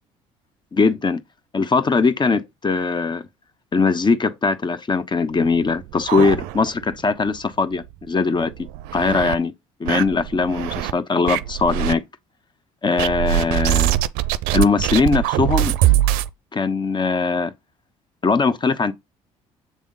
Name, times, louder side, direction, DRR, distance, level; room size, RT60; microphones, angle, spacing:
voice 1, 0.7-1.2 1.5-3.2 3.7-8.7 8.9-9.5 9.8-12.0 12.8-14.0 14.5-15.7 16.5-17.5 18.2-18.9, left 4 dB, 30° left, 1.0 m, -20 dB
sound 1, 5.4-6.9 7.3-7.4 7.7-7.8 8.4-9.4 9.9-10.9 11.3-11.9 13.0-16.3, right 14 dB, 75° right, 0.5 m, -22 dB
7.5 x 3.5 x 3.9 m
hypercardioid pair, 65°, 16 cm